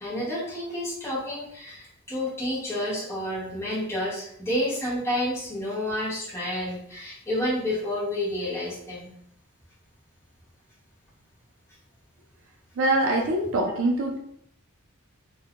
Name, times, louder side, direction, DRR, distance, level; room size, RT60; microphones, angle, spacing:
voice 1, 0.0-9.1 13.7-13.8, left 1 dB, 10° left, -7 dB, 0.9 m, -30 dB
voice 2, 12.8-14.2, right 2 dB, 60° right, 1 dB, 0.4 m, -24 dB
3.5 x 2.1 x 2.4 m, 0.68 s
head